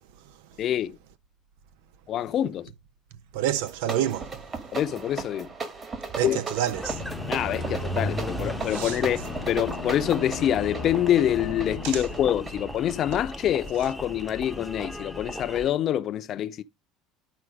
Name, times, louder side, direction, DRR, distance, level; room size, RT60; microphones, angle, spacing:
voice 1, 0.6-1.0 2.1-2.7 4.7-5.5 6.2-6.4 7.3-16.6, left 11 dB, 50° left, 0.8 m, -26 dB
voice 2, 3.3-4.4 6.2-7.0 8.7-9.0 11.8-12.0, right 11 dB, 80° right, 0.9 m, -28 dB
sound 1, 3.6-13.9, right 4 dB, 30° right, 2.0 m, -37 dB
Engine, 6.7-15.7, equal, 5° right, 1.0 m, -36 dB
sound 2, 6.9-13.5, left 16 dB, 80° left, 0.5 m, -40 dB
11.0 x 4.4 x 5.1 m
supercardioid pair, 105°, 0 cm